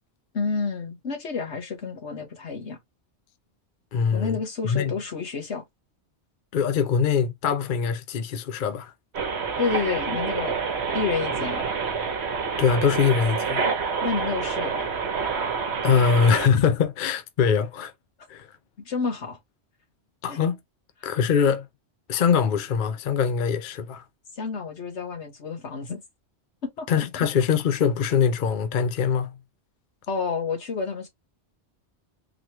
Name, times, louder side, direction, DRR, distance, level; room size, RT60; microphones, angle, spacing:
voice 1, 0.3-2.8 4.1-5.6 9.6-10.5 10.9-11.6 14.0-14.9 18.8-19.4 20.3-20.4 24.4-26.0 26.6-26.9 30.1-31.1, left 5 dB, 80° left, 1.6 m, -29 dB
voice 2, 3.9-4.4 4.6-4.9 6.5-8.9 12.6-13.6 15.8-17.9 18.3-18.5 20.2-20.6 21.0-21.7 22.1-24.0 26.9-29.4, left 6 dB, 55° left, 0.7 m, -23 dB
sound 1, 9.1-16.5, right 5 dB, 70° right, 1.2 m, -27 dB
4.0 x 3.0 x 2.9 m
omnidirectional pair, 1.2 m